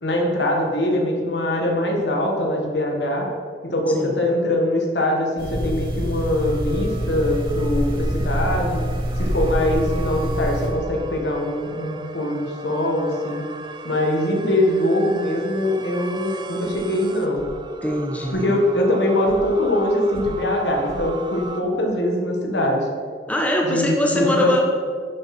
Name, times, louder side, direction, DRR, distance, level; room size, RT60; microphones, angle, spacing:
voice 1, 0.0-3.3 3.6-8.8 9.2-13.5 13.8-17.5 18.3-22.9 23.6-24.5, left 1 dB, 75° left, 1 dB, 1.7 m, -22 dB
sound 1, 5.4-10.7, equal, 55° right, 2.2 m, -25 dB
sound 2, 6.4-21.6, right 3 dB, 25° right, 0.6 m, -39 dB
sound 3, 16.6-16.8 17.3-17.5 18.2-18.4 19.2-19.4 20.1-20.2 20.8-21.0, left 1 dB, 55° left, 1.9 m, -41 dB
voice 2, 17.8-18.4 23.3-24.6, equal, 10° left, 0 dB, 1.1 m, -22 dB
10.5 x 7.3 x 4.4 m, 2.1 s
head